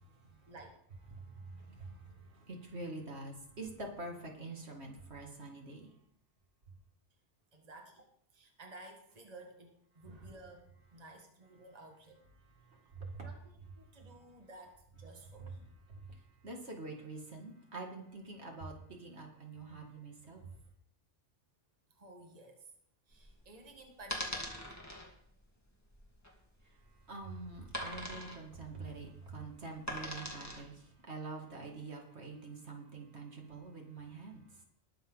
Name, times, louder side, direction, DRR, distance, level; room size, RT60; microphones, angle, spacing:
voice 1, 0.1-0.5 1.1-6.0 12.4-13.3 13.8-14.0 15.5-15.6 15.9-20.6 26.6-34.6, right 3 dB, 65° right, 1 dB, 2.3 m, -46 dB
voice 2, 7.5-8.1 8.3-12.2 13.2-13.4 13.8-15.8 21.9-22.7 23.1-24.6, right 2 dB, 35° right, 2 dB, 1.8 m, -54 dB
sound 1, 23.1-30.8, equal, 15° left, 2.0 m, -43 dB
20.0 x 7.0 x 3.9 m, 0.66 s
omnidirectional pair, 1.2 m